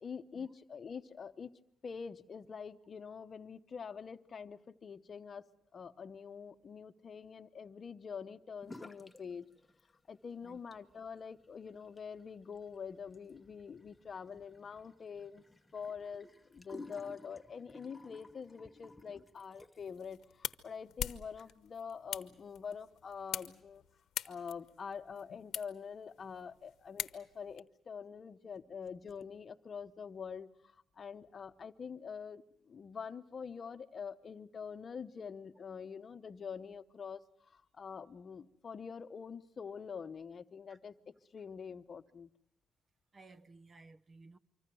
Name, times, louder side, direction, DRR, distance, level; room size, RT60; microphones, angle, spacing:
voice 1, 0.0-1.5 1.8-9.5 10.1-15.4 15.7-23.8 24.2-42.3, left 6 dB, 45° left, 0.9 m, -45 dB
sound 1, 8.6-9.2 9.5-10.2 10.5-20.0, left 2 dB, 10° left, 1.2 m, -55 dB
sound 2, 19.8-27.6, left 11 dB, 75° left, 1.0 m, -44 dB
voice 2, 43.1-44.4, right 3 dB, 35° right, 1.0 m, -57 dB
25.0 x 24.5 x 6.2 m
cardioid pair, 90°, 0 cm